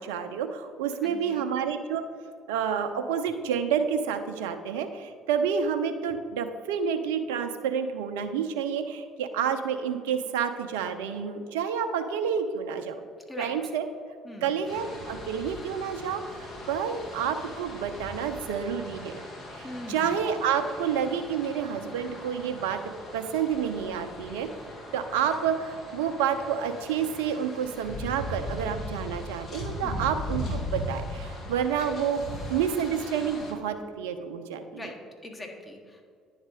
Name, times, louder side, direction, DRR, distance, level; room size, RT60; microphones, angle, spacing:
voice 1, 0.0-2.0 2.5-13.0 13.4-13.8 14.4-19.2 19.5-22.8 23.1-24.5 24.9-34.8, right 7 dB, 80° right, 8 dB, 0.5 m, -29 dB
voice 2, 1.0-1.5 13.3-13.7 14.2-14.5 19.6-20.2 29.8-30.1 34.7-36.0, left 1 dB, 25° left, 2 dB, 1.4 m, -41 dB
sound 1, 14.6-33.5, left 1 dB, 50° left, 1.5 m, -39 dB
9.9 x 3.6 x 4.8 m, 2.1 s
hypercardioid pair, 55°, 0 cm